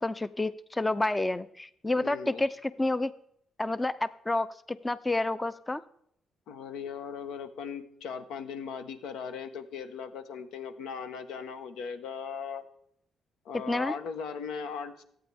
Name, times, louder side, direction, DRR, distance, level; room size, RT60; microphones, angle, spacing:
voice 1, 0.0-3.1 3.6-5.8 13.7-13.9, left 2 dB, 15° left, 15 dB, 0.5 m, -29 dB
voice 2, 2.0-2.4 6.5-12.6 13.4-15.0, left 6 dB, 85° left, 9 dB, 1.2 m, -38 dB
24.5 x 9.0 x 3.5 m, 0.73 s
cardioid pair, 90°, 0 cm